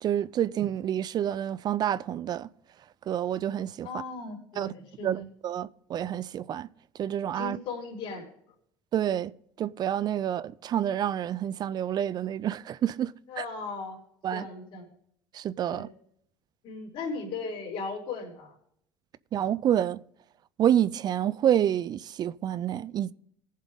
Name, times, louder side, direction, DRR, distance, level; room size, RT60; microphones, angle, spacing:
voice 1, 0.0-2.5 3.1-3.9 4.6-4.7 5.0-6.7 7.0-7.6 8.9-9.3 9.6-13.1 13.4-13.5 14.2-14.5 15.3-15.9 19.3-20.0 20.6-23.1, right 10 dB, 45° right, 0.4 m, -28 dB
voice 2, 3.8-5.2 7.3-8.3 13.3-14.0 14.3-14.9 15.7-15.9 16.6-18.5, left 4 dB, 60° left, 4.4 m, -37 dB
18.0 x 7.3 x 3.6 m
supercardioid pair, 90°, 10 cm